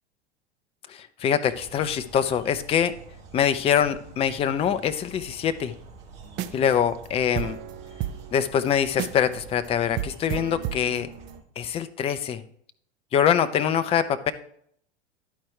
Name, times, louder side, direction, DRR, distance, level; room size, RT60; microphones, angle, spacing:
voice 1, 1.2-2.9 3.3-5.7 6.5-7.6 8.3-11.1 11.6-12.4 13.1-14.3, left 8 dB, 20° left, 10 dB, 0.5 m, -24 dB
sound 1, 1.5-11.4, right 4 dB, 55° right, 2.2 m, -47 dB
sound 2, 6.3-6.7 7.0-7.1 7.4-9.3 9.7-9.8 10.0-11.4, right 11 dB, 35° right, 0.6 m, -33 dB
11.5 x 4.5 x 4.8 m, 0.66 s
figure-of-eight pair, 80°, 34 cm